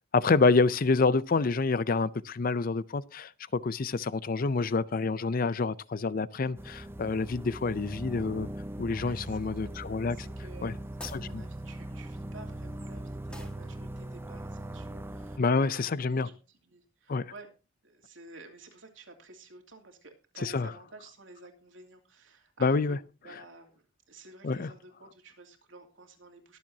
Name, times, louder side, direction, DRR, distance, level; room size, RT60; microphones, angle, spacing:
voice 1, 0.1-8.5 8.8-10.2 10.6-10.7 11.1-11.4 15.4-16.3 17.1-17.3 20.4-20.7 22.6-23.0 24.4-24.7, left 4 dB, 45° left, 0.5 m, -27 dB
sound 1, 6.6-15.4, right 1 dB, 10° right, 0.6 m, -40 dB
voice 2, 9.0-9.7 10.1-17.5 17.8-23.7 24.1-26.6, right 2 dB, 75° right, 2.8 m, -52 dB
sound 2, 11.0-11.3 13.3-13.6, left 1 dB, 5° left, 1.7 m, -45 dB
22.5 x 7.5 x 2.8 m
head